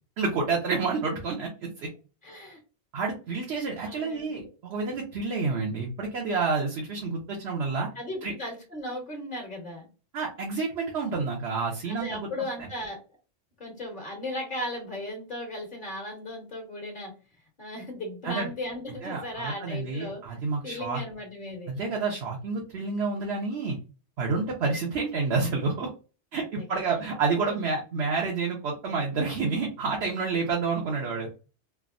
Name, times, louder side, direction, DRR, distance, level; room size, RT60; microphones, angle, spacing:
voice 1, 0.2-1.5 1.8-1.9 2.9-7.9 8.2-8.3 10.1-12.3 18.2-18.5 19.0-21.0 21.7-23.8 24.2-25.9 26.3-31.3, right 4 dB, 75° right, -1 dB, 1.0 m, -29 dB
voice 2, 2.2-2.6 3.7-4.5 7.9-9.9 11.8-13.0 13.6-17.1 17.6-20.2 20.6-21.7 26.6-27.0 27.4-27.6, left 1 dB, 50° left, 0 dB, 1.1 m, -36 dB
3.4 x 2.0 x 2.4 m, 0.33 s
omnidirectional pair, 1.1 m